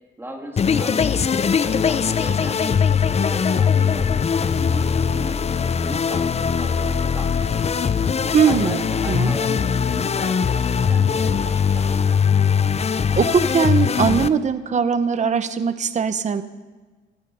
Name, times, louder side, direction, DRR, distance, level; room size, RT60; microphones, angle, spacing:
voice 1, 0.2-2.6 3.0-4.1 4.4-5.5 5.8-7.7 8.0-12.2, right 1 dB, 10° right, 2 dB, 3.1 m, -37 dB
sound 1, 0.6-14.3, left 6 dB, 30° left, 0.6 m, -20 dB
voice 2, 8.3-9.3 13.2-16.4, right 6 dB, 35° right, 11 dB, 0.9 m, -20 dB
17.5 x 13.0 x 5.6 m, 1.3 s
cardioid pair, 90°, 20 cm